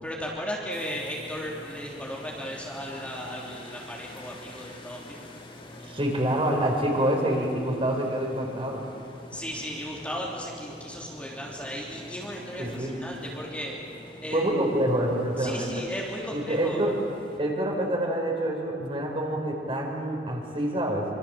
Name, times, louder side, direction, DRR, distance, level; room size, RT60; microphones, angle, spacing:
voice 1, 0.0-5.2 9.3-13.8 14.2-14.5 15.4-16.8, equal, 10° left, -3 dB, 3.2 m, -36 dB
sound 1, 0.7-17.4, left 1 dB, 30° left, 2.8 m, -46 dB
voice 2, 5.8-8.9 12.6-13.0 14.3-15.9 16.3-16.9 17.4-21.1, right 1 dB, 30° right, 1 dB, 4.4 m, -27 dB
26.5 x 25.5 x 7.6 m, 2.8 s
head